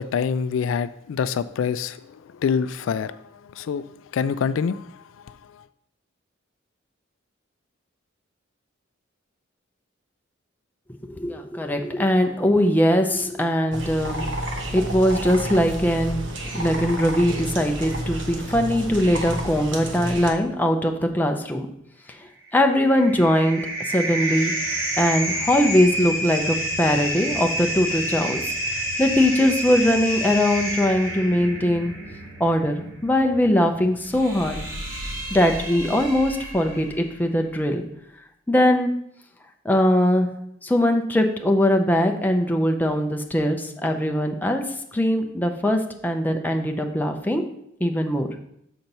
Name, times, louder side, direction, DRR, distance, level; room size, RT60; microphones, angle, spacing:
voice 1, 0.0-5.6, left 6 dB, 75° left, 14 dB, 0.3 m, -27 dB
voice 2, 11.1-14.2 14.7-16.2 16.5-21.7 22.5-24.5 25.0-28.4 29.0-31.9 32.4-34.6 35.3-37.8 38.5-38.9 39.6-40.3 40.6-44.6 44.9-47.4 47.8-48.3, left 1 dB, 10° left, 3 dB, 0.6 m, -21 dB
sound 1, 13.7-20.3, right 1 dB, 65° right, 1.1 m, -30 dB
sound 2, 22.5-37.1, right 1 dB, 90° right, 2.8 m, -29 dB
6.5 x 4.5 x 5.4 m, 0.74 s
head